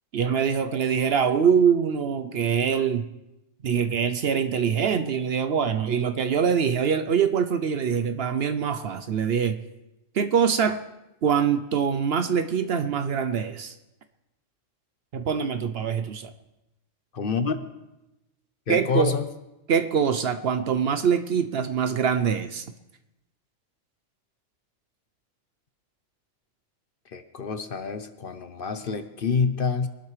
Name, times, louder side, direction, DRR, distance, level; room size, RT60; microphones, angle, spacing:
voice 1, 0.1-3.0 3.6-9.6 10.1-10.8 11.2-13.7 15.1-16.3 18.7-19.1 19.7-22.6, right 7 dB, 60° right, 10 dB, 0.8 m, -24 dB
voice 2, 17.1-17.7 18.7-19.3 27.1-29.9, left 5 dB, 50° left, 10 dB, 0.8 m, -27 dB
23.0 x 12.0 x 3.2 m, 0.96 s
omnidirectional pair, 1.3 m